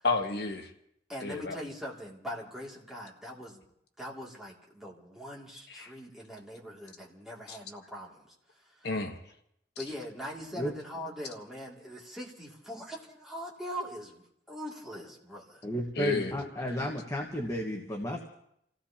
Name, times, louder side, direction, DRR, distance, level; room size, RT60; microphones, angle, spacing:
voice 1, 0.0-0.7 1.2-1.6 5.7-5.9 7.5-7.6 8.8-9.2 16.0-16.3, left 3 dB, 65° left, 4 dB, 1.3 m, -31 dB
voice 2, 1.1-3.6 4.0-8.3 8.8-8.9 9.8-15.6, equal, ahead, -4 dB, 2.5 m, -42 dB
voice 3, 15.6-18.3, equal, 20° left, 0 dB, 1.4 m, -33 dB
29.0 x 16.0 x 2.9 m, 0.75 s
head